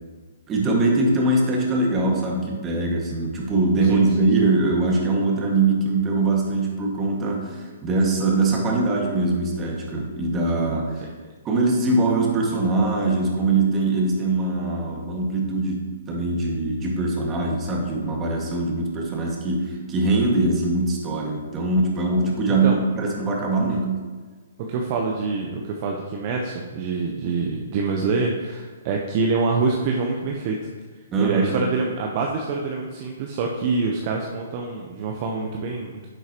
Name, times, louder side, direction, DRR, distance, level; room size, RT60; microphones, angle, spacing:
voice 1, 0.5-10.9 11.4-24.0 31.1-31.6, right 2 dB, 20° right, -1 dB, 1.9 m, -22 dB
voice 2, 24.7-30.7 31.2-36.1, right 4 dB, 40° right, 0 dB, 0.9 m, -26 dB
10.5 x 7.9 x 3.0 m, 1.4 s
hypercardioid pair, 130°, 0 cm